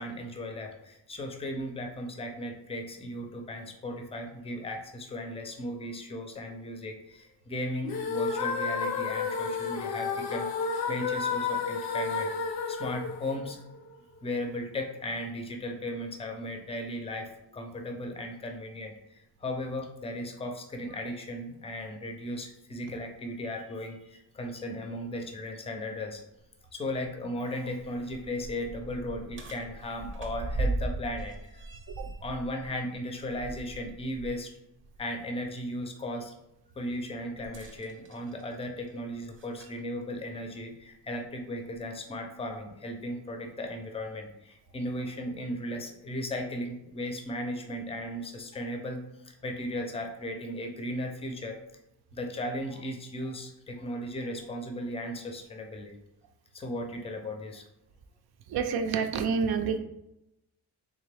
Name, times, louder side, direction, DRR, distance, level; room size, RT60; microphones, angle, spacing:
voice 1, 0.0-13.6 14.2-26.2 26.7-31.6 32.2-34.5 35.0-36.3 36.8-51.6 52.1-55.9 56.5-57.6, left 1 dB, 15° left, 3 dB, 0.5 m, -36 dB
sound 1, 7.8-14.0, left 5 dB, 65° left, 0.6 m, -31 dB
sound 2, 26.4-26.5 27.0-27.1 27.7-34.4 34.8-35.0 37.4-39.8 40.8-40.9 41.7-41.8, right 2 dB, 30° right, 0.7 m, -38 dB
voice 2, 58.5-59.8, right 6 dB, 65° right, 6 dB, 0.5 m, -28 dB
3.5 x 3.3 x 3.3 m, 0.87 s
cardioid pair, 125°, 40 cm